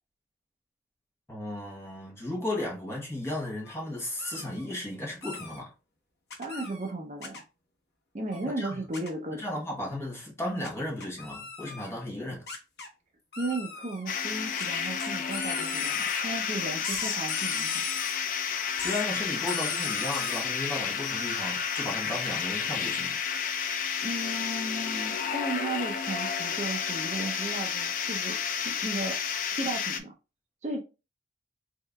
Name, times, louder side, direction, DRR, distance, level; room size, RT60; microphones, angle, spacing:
voice 1, 1.3-5.7 8.4-8.8 9.3-12.5 18.8-23.1 24.3-24.5, left 1 dB, 15° left, 1.0 m, -35 dB
sound 1, 3.7-3.8 4.2-4.7 5.2-5.6 6.3-6.9 7.2-7.4 8.3-8.5 8.9-9.1 10.6-10.7 11.0-11.9 12.5-12.9 13.3-14.1 14.6-14.7 15.0-16.2 16.8-18.2 18.7-19.1 19.5-20.5, left 4 dB, 65° left, 0.9 m, -38 dB
voice 2, 6.4-7.4 8.1-9.4 13.4-17.8 24.0-28.4 28.6-29.2 29.5-30.1 30.6-30.8, right 2 dB, 40° right, 0.6 m, -35 dB
sound 2, 14.1-30.0, left 7 dB, 45° left, 0.4 m, -31 dB
3.6 x 3.2 x 2.2 m
head